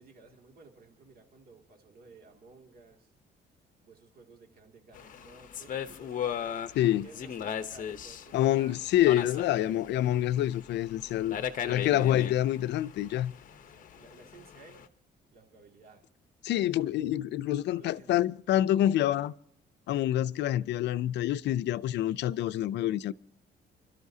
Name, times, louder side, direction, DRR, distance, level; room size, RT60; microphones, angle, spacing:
voice 1, 0.0-3.1 3.8-6.2 7.0-10.2 13.7-14.9 15.3-16.0 16.5-16.7 17.7-18.1, right 3 dB, 55° right, 2.5 m, -55 dB
sound 1, 4.9-14.9, left 8 dB, 45° left, 0.9 m, -38 dB
voice 2, 6.7-7.1 8.3-11.4 11.6-13.3 16.4-19.3 19.9-23.1, left 13 dB, 75° left, 0.5 m, -27 dB
30.0 x 12.5 x 2.8 m
cardioid pair, 130°, 18 cm